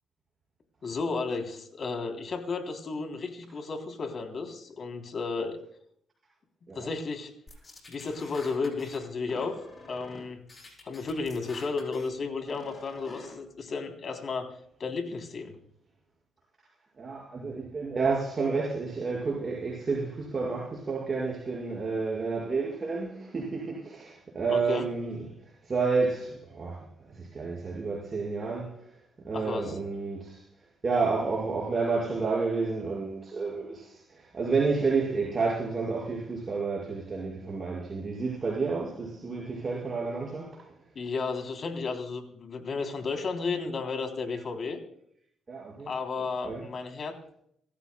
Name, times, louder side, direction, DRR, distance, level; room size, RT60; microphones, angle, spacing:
voice 1, 0.8-5.6 6.7-7.3 7.9-10.4 10.8-14.5 14.8-15.6 24.5-24.9 29.3-29.8 40.9-44.8 45.9-47.2, left 4 dB, 50° left, 3.4 m, -33 dB
sound 1, 7.5-9.0 9.3-10.2 10.5-12.1 12.5-13.3, left 2 dB, 30° left, 7.6 m, -47 dB
voice 2, 17.0-25.2 25.6-28.8 29.2-30.4 30.8-40.6 45.5-45.9 46.4-46.6, right 4 dB, 35° right, 5.6 m, -30 dB
27.0 x 14.5 x 2.3 m
cardioid pair, 90°, 0 cm